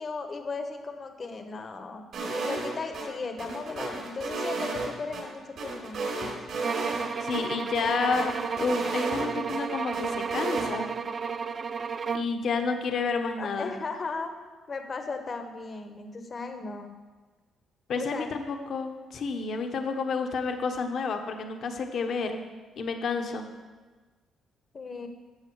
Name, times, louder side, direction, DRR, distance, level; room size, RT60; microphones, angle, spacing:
voice 1, 0.0-6.4 13.4-14.3 14.7-16.9 18.0-18.3 24.7-25.1, left 4 dB, 40° left, 6 dB, 1.0 m, -36 dB
sound 1, 2.1-3.1 3.4-5.2 5.6-7.1 7.3-7.4 7.7-9.6 9.9-10.7, right 3 dB, 70° right, 4.0 m, -33 dB
sound 2, 6.6-12.4, right 6 dB, 45° right, 0.4 m, -32 dB
voice 2, 7.2-10.9 12.1-13.7 17.9-22.4 22.8-23.5, left 4 dB, 60° left, 5 dB, 1.1 m, -30 dB
13.0 x 7.5 x 4.7 m, 1.3 s
cardioid pair, 90°, 0 cm